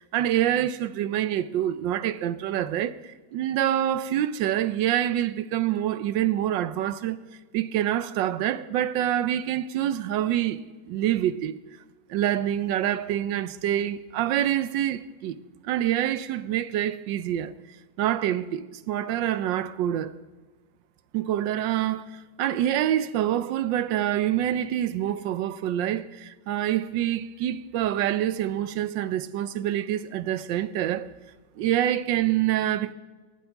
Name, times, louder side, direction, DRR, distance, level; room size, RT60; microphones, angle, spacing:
voice 1, 0.0-7.2 7.5-10.6 10.9-11.5 12.1-15.4 15.6-17.5 18.0-20.1 21.1-31.1 31.6-32.9, right 11 dB, 75° right, 1.3 m, -26 dB
19.0 x 14.5 x 3.5 m
omnidirectional pair, 2.1 m